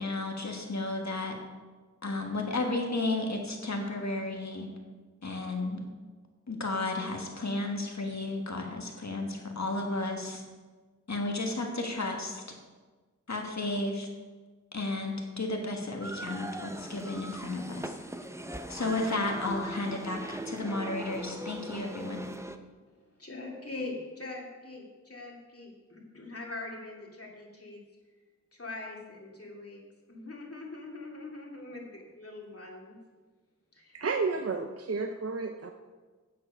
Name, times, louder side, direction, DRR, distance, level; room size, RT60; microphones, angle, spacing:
voice 1, 0.0-1.4 2.0-4.7 5.2-5.8 6.5-10.4 11.1-12.4 13.3-14.1 14.7-17.9 18.7-20.2 20.4-22.3, left 2 dB, 65° left, 1 dB, 1.5 m, -33 dB
sound 1, 16.0-22.6, right 1 dB, 10° right, 0.6 m, -40 dB
voice 2, 22.9-27.8 28.5-29.8 30.1-33.0 33.7-34.0, left 2 dB, 50° left, -2 dB, 2.3 m, -42 dB
voice 3, 33.9-35.7, right 4 dB, 55° right, 5 dB, 0.6 m, -31 dB
8.6 x 7.5 x 5.4 m, 1.3 s
wide cardioid pair, 55°, 29 cm